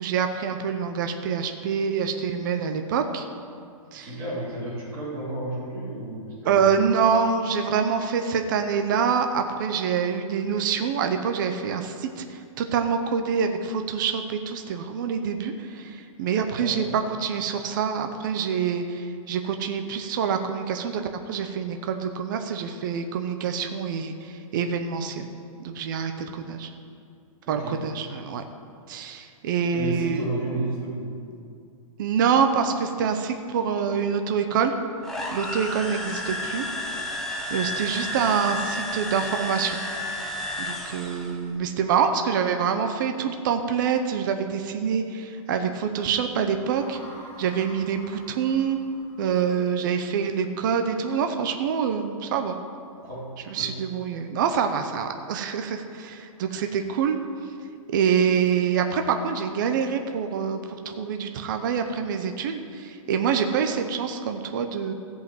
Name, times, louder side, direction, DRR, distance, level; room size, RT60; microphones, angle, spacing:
voice 1, 0.0-3.3 3.9-4.1 6.4-21.0 21.3-25.3 25.6-26.7 27.5-28.4 28.9-30.2 32.0-34.7 35.3-36.7 37.5-39.8 40.6-47.0 47.4-48.8 49.2-52.6 53.5-57.2 57.9-64.9, right 6 dB, 35° right, 6 dB, 0.7 m, -26 dB
voice 2, 4.0-6.9 16.6-16.9 27.5-27.8 29.7-31.1 53.0-53.3 53.6-53.7, right 1 dB, 15° right, -11 dB, 2.8 m, -32 dB
sound 1, 35.0-41.4, left 1 dB, ahead, 0.7 m, -32 dB
sound 2, 46.8-50.1, left 1 dB, 30° left, 2.8 m, -48 dB
14.5 x 5.7 x 7.6 m, 2.4 s
hypercardioid pair, 175°, 18 cm